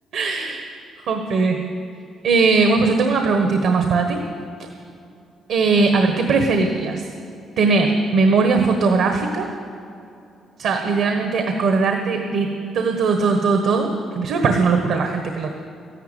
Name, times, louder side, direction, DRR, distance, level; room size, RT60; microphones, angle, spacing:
voice 1, 0.1-0.7 1.1-1.6 2.2-4.2 5.5-7.0 7.6-9.5 10.6-13.9 14.1-15.5, right 4 dB, 80° right, 4 dB, 1.3 m, -19 dB
13.5 x 11.5 x 9.2 m, 2.6 s
cardioid pair, 90°, 0 cm